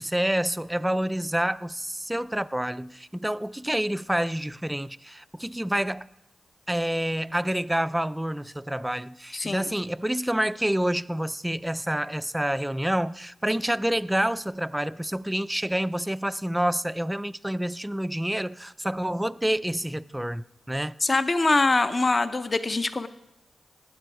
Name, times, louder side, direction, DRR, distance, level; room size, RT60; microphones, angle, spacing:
voice 1, 0.0-6.1 6.7-20.9, right 1 dB, 10° right, 0.4 m, -28 dB
voice 2, 9.3-9.7 21.0-23.1, left 3 dB, 40° left, 0.6 m, -23 dB
19.0 x 7.7 x 4.8 m
cardioid pair, 65°, 0 cm